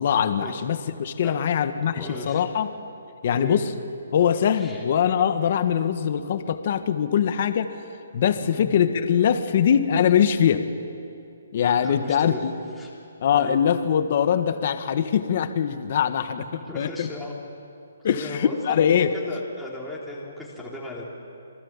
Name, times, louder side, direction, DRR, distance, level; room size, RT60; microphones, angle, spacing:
voice 1, 0.0-2.7 3.2-3.7 4.1-7.7 8.1-10.7 11.5-12.5 13.2-16.4 16.7-17.1 18.0-19.1, left 8 dB, 40° left, 9 dB, 1.4 m, -22 dB
voice 2, 1.8-2.4 3.3-3.6 4.6-4.8 8.4-8.6 11.8-12.4 12.8-12.9 13.3-13.6 16.7-17.4 18.1-18.6 18.8-21.0, left 1 dB, ahead, -6 dB, 3.1 m, -36 dB
27.0 x 23.5 x 7.5 m, 2.6 s
hypercardioid pair, 170°, 0 cm